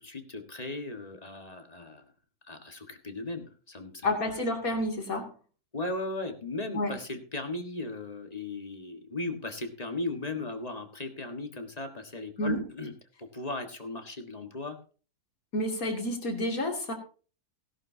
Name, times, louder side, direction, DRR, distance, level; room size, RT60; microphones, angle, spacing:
voice 1, 0.0-2.0 2.4-4.3 5.7-12.9 13.2-14.8, left 2 dB, 25° left, 6 dB, 1.6 m, -37 dB
voice 2, 4.0-5.3 6.7-7.0 12.4-12.6 15.5-16.9, left 1 dB, 65° left, 2 dB, 3.1 m, -29 dB
17.0 x 11.5 x 2.8 m, 0.38 s
omnidirectional pair, 1.6 m